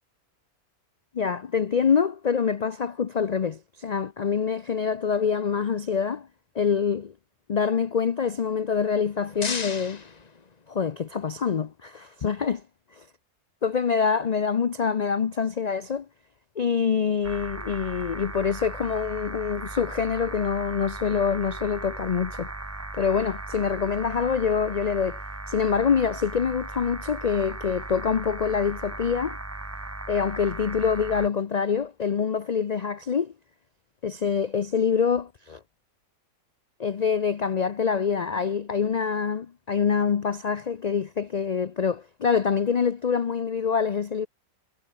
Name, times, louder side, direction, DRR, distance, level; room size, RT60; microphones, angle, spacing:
voice 1, 1.1-6.3 6.5-7.1 7.5-10.0 10.7-12.6 13.0-13.1 13.6-16.1 16.6-22.5 22.9-25.2 25.5-29.4 30.1-33.3 34.0-35.6 36.8-44.3, left 6 dB, 55° left, 0.4 m, -25 dB
sound 1, 8.9-11.1, left 4 dB, 30° left, 1.2 m, -37 dB
sound 2, 17.2-31.3, right 2 dB, 10° right, 0.9 m, -37 dB
omnidirectional pair, 1.6 m